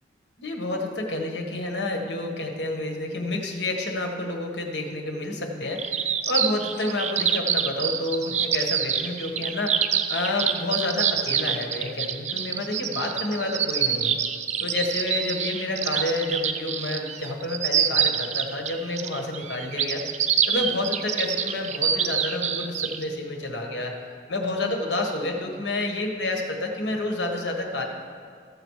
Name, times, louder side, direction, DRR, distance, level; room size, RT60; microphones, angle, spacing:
voice 1, 0.4-5.9 6.3-9.8 10.1-14.1 14.6-20.0 20.5-23.9 24.3-27.8, left 2 dB, 85° left, 2 dB, 1.5 m, -29 dB
sound 1, 5.8-23.0, right 8 dB, 40° right, 0.5 m, -26 dB
14.0 x 6.9 x 4.8 m, 2.2 s
head